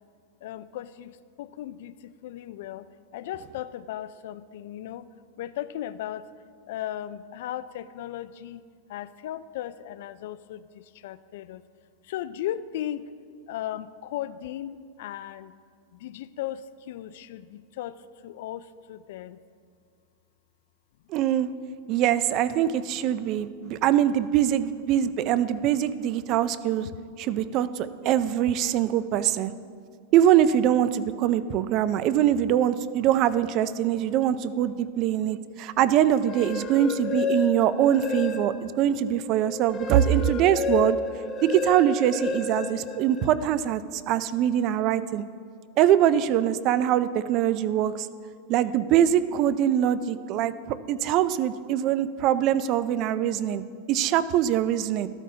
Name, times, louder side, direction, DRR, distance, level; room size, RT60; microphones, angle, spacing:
voice 1, 0.4-2.9 3.1-5.1 5.4-6.2 6.7-8.6 8.9-11.6 12.1-13.1 13.5-15.5 16.0-19.4, left 12 dB, 65° left, 14 dB, 0.4 m, -36 dB
voice 2, 21.1-21.5 21.9-26.9 27.2-29.5 30.1-41.0 41.4-45.2 45.8-48.1 48.5-53.6 53.9-55.1, right 11 dB, 40° right, 15 dB, 0.4 m, -23 dB
sound 1, 36.1-38.8 39.2-43.5, left 4 dB, 25° left, 0.9 m, -31 dB
13.0 x 12.5 x 2.8 m, 2.1 s
supercardioid pair, 145°, 0 cm